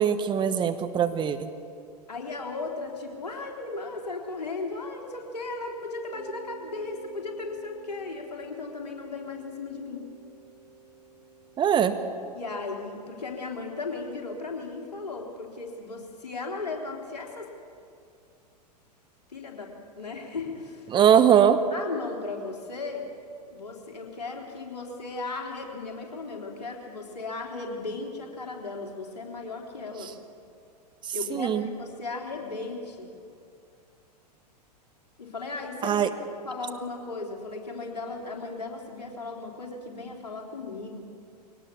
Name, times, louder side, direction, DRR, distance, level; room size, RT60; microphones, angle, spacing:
voice 1, 0.0-1.5 11.6-12.0 20.9-21.6 31.3-31.7 35.8-36.1, right 9 dB, 20° right, 10 dB, 1.0 m, -21 dB
voice 2, 2.1-10.1 12.3-17.5 19.3-20.9 21.7-23.1 23.5-30.1 31.1-33.1 35.2-36.2 36.4-41.0, left 3 dB, 70° left, 1 dB, 3.8 m, -36 dB
Mallet percussion, 6.1-14.7, right 5 dB, 50° right, 4.5 m, -49 dB
22.5 x 18.0 x 7.2 m, 2.5 s
figure-of-eight pair, 95°, 21 cm